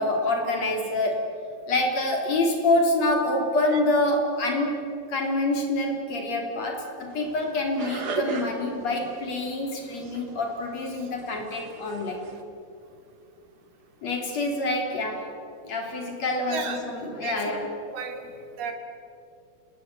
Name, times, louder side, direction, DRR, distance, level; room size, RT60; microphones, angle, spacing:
voice 1, 0.0-1.4 1.7-12.2 14.0-15.4 15.7-17.7, left 2 dB, 45° left, 2 dB, 4.4 m, -26 dB
sound 1, 7.1-12.4, right 5 dB, 40° right, 1.4 m, -38 dB
voice 2, 16.5-16.8 17.2-18.2 18.6-18.7, right 6 dB, 85° right, 4 dB, 4.5 m, -34 dB
28.0 x 20.0 x 8.5 m, 2.6 s
omnidirectional pair, 4.4 m